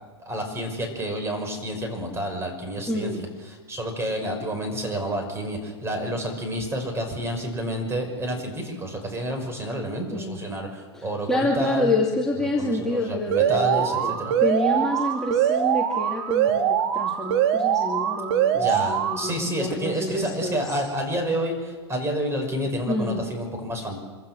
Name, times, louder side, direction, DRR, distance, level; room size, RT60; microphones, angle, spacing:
voice 1, 0.3-11.9 12.6-14.3 18.5-24.0, equal, 15° right, 3 dB, 5.8 m, -29 dB
voice 2, 2.9-3.3 10.1-10.4 10.9-20.8 22.9-23.2, left 1 dB, 5° left, -3 dB, 2.6 m, -28 dB
Alarm, 13.3-19.3, right 9 dB, 65° right, 2.0 m, -23 dB
25.5 x 16.0 x 6.3 m, 1.4 s
hypercardioid pair, 115°, 15 cm